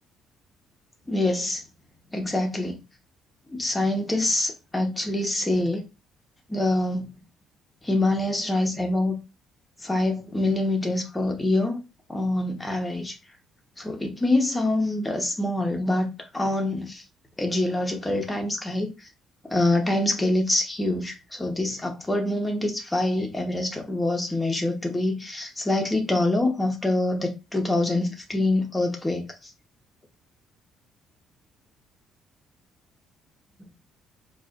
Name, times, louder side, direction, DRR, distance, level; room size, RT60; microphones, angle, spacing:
voice 1, 1.1-1.6 2.1-2.8 3.5-5.8 6.5-7.1 7.8-9.2 9.8-11.8 12.1-13.2 13.8-17.0 17.4-18.9 19.5-29.3, left 2 dB, 10° left, 1.0 m, -25 dB
4.8 x 2.5 x 2.4 m
cardioid pair, 120°, 0 cm